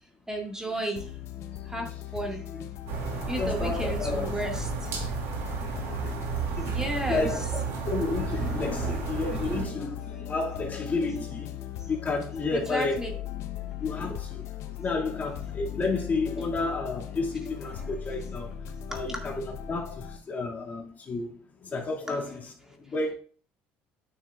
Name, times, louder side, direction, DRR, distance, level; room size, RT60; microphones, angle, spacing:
voice 1, 0.3-1.0 1.7-2.5 3.3-4.7 6.6-7.5 12.5-13.1 14.0-14.2 18.9-19.2 22.1-22.2, right 1 dB, 10° right, 2.0 m, -33 dB
sound 1, 1.0-20.2, left 10 dB, 65° left, 0.9 m, -38 dB
sound 2, 2.9-9.7, right 6 dB, 70° right, 2.4 m, -32 dB
voice 2, 3.4-4.3 6.0-6.7 7.1-7.4 7.8-13.0 13.8-14.4 14.8-18.5 18.9-21.3 21.6-22.5 22.8-23.1, left 3 dB, 35° left, 2.2 m, -31 dB
9.9 x 6.2 x 2.4 m
supercardioid pair, 85°, 5 cm